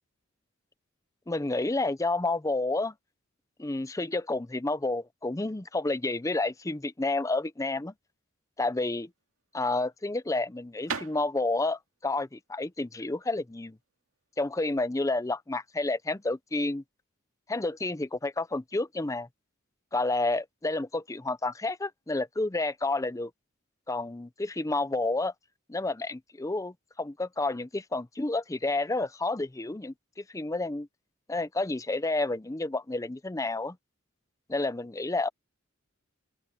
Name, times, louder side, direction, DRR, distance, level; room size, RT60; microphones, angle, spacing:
voice 1, 1.3-2.9 3.6-7.9 8.6-9.1 9.5-13.8 14.4-16.8 17.5-19.3 19.9-23.3 23.9-25.3 25.7-29.9 30.3-30.9 31.3-33.8 34.5-35.3, left 2 dB, 15° left, 0.6 m, -30 dB
sound 1, 9.0-14.6, right 6 dB, 90° right, 2.3 m, -42 dB
open air
head